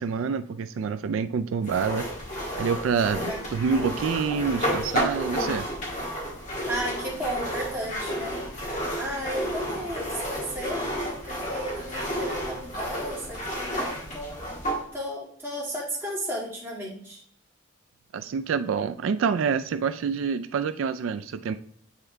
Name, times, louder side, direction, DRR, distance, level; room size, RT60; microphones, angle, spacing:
voice 1, 0.0-2.1 2.6-5.7 18.1-21.5, right 6 dB, 85° right, 10 dB, 0.3 m, -27 dB
sound 1, 1.6-14.8, equal, 40° left, 1.6 m, -31 dB
voice 2, 6.7-8.5 9.0-14.4 14.9-17.2, equal, 10° right, -6 dB, 2.1 m, -34 dB
8.1 x 3.6 x 3.3 m, 0.63 s
head